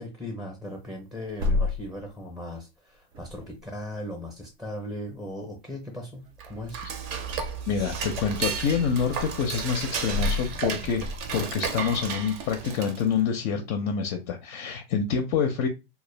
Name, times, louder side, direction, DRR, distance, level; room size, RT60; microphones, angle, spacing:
voice 1, 0.0-6.2 6.5-6.8, left 1 dB, ahead, 1 dB, 0.6 m, -38 dB
sound 1, 0.9-2.1 3.1-3.6 4.8-4.9 5.2-5.3 6.2-6.6 6.9-7.1 9.0-9.1 9.5-9.8 10.1-10.8, left 3 dB, 85° right, 1.0 m, -29 dB
Dishes pots and pans / Cutlery silverware, 6.3-13.2, right 5 dB, 50° right, 0.6 m, -33 dB
voice 2, 7.7-15.7, left 6 dB, 45° left, 5 dB, 0.5 m, -27 dB
2.2 x 2.0 x 3.2 m, 0.26 s
hypercardioid pair, 115°, 31 cm